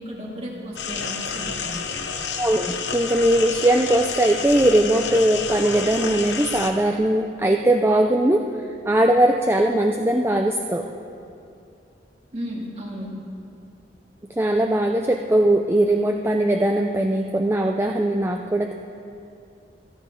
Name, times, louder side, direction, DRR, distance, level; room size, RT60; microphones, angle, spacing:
voice 1, 0.0-1.7 12.3-13.2, equal, 35° right, -3 dB, 2.5 m, -34 dB
sound 1, 0.8-6.7, left 5 dB, 80° left, 1.1 m, -30 dB
voice 2, 2.4-8.4 8.9-10.8 14.4-18.7, right 1 dB, 15° right, 3 dB, 0.5 m, -20 dB
27.0 x 10.0 x 3.8 m, 2.5 s
head